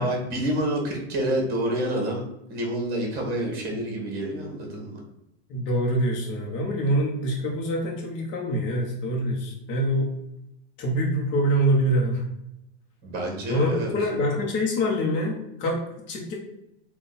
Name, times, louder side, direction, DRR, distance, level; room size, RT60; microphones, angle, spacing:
voice 1, 0.0-2.2 2.5-5.0 13.0-13.9, right 1 dB, 30° right, 1 dB, 1.3 m, -28 dB
voice 2, 5.5-10.1 10.8-12.2 13.5-16.3, equal, 35° left, -1 dB, 0.9 m, -25 dB
3.8 x 2.4 x 3.9 m, 0.85 s
supercardioid pair, 140°, 33 cm